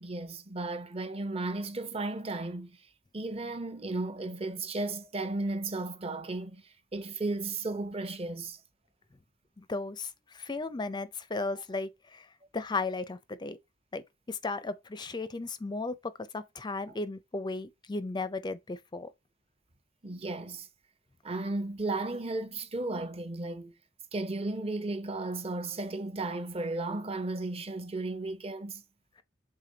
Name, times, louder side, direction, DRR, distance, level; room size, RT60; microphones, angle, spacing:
voice 1, 0.0-2.9 3.1-8.6 20.0-20.7 21.2-23.7 24.1-28.8, right 2 dB, 30° right, 0.8 m, -34 dB
voice 2, 9.6-12.3 12.5-13.6 13.9-19.1, left 3 dB, 25° left, 0.4 m, -35 dB
6.7 x 3.7 x 3.8 m
head